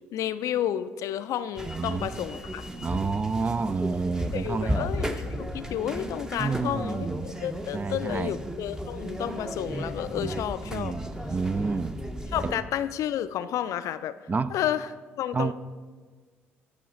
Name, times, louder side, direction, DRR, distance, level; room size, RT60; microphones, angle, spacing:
voice 1, 0.1-2.7 4.3-10.9 12.3-14.2 14.5-14.9 15.2-15.5, left 11 dB, 60° left, 13 dB, 0.4 m, -31 dB
sound 1, 1.6-12.5, equal, 10° right, 0.7 m, -35 dB
voice 2, 1.7-2.1 2.8-4.9 6.4-7.2 7.7-8.3 10.2-10.4 10.7-12.0 12.4-12.6 14.3-14.5 15.3-15.5, right 4 dB, 25° right, 15 dB, 0.3 m, -29 dB
12.5 x 4.9 x 3.8 m, 1.5 s
hypercardioid pair, 55°, 6 cm